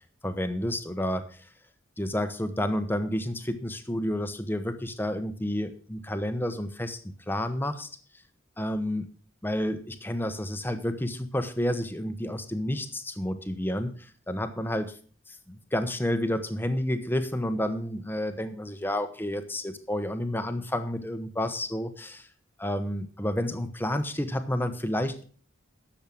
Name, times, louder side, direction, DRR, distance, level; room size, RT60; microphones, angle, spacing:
voice 1, 0.2-1.5 2.0-7.0 7.3-7.9 8.6-9.1 9.4-15.0 15.3-22.3 22.6-25.2, left 1 dB, 10° left, 9 dB, 0.9 m, -30 dB
10.5 x 7.3 x 6.0 m, 0.42 s
head